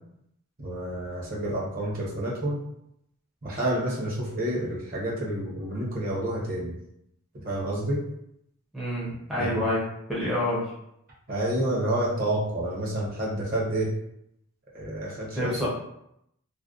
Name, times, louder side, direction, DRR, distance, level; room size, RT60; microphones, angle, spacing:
voice 1, 0.6-2.6 3.4-6.7 7.3-8.1 9.4-9.7 11.3-13.9 14.7-15.5, right 1 dB, 40° right, -5 dB, 0.7 m, -29 dB
voice 2, 8.7-9.8 10.1-10.6 15.3-15.7, left 1 dB, ahead, -9 dB, 0.5 m, -27 dB
2.5 x 2.1 x 2.3 m, 0.77 s
head